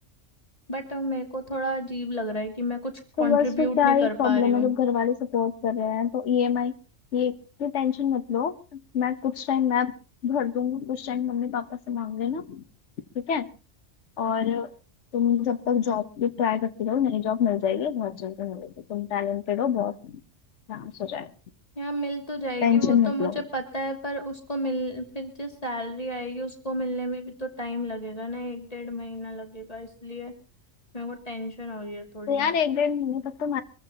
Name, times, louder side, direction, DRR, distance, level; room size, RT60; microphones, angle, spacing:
voice 1, 0.7-4.7 21.8-30.3 30.9-32.5, equal, 30° left, 3 dB, 2.7 m, -32 dB
voice 2, 3.2-6.7 7.1-9.9 10.2-12.6 13.1-13.5 14.2-14.7 15.1-20.2 20.7-21.3 22.6-23.4 32.3-33.6, left 8 dB, 65° left, 10 dB, 1.3 m, -25 dB
25.0 x 14.5 x 2.9 m, 0.35 s
omnidirectional pair, 1.3 m